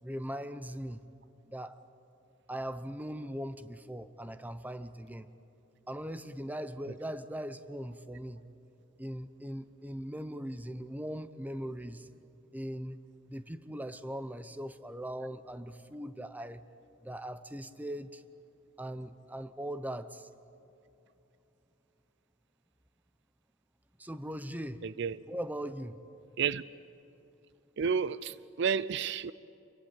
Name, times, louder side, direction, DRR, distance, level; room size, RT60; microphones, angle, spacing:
voice 1, 0.0-1.0 1.5-1.8 2.5-5.3 5.9-8.4 9.0-12.1 12.5-13.0 13.3-16.6 17.0-18.2 18.8-20.3 24.0-24.8 25.3-26.0, equal, 10° right, 0.9 m, -40 dB
voice 2, 24.8-25.2 26.4-26.6 27.8-29.3, right 6 dB, 60° right, 0.5 m, -31 dB
28.5 x 23.0 x 8.9 m
head